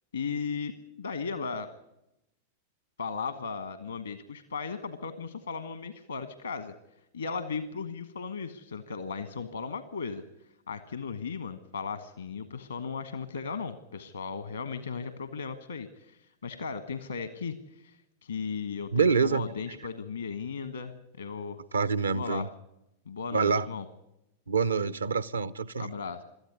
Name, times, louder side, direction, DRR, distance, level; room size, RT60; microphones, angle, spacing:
voice 1, 0.1-1.7 3.0-6.7 7.1-10.2 10.7-21.6 22.1-22.5 23.1-23.8 25.8-26.2, left 5 dB, 75° left, 1.3 m, -36 dB
voice 2, 18.9-19.5 21.7-22.5 23.3-23.7 24.5-25.9, right 5 dB, 75° right, 0.7 m, -26 dB
23.0 x 13.5 x 9.5 m
figure-of-eight pair, 90°, 0 cm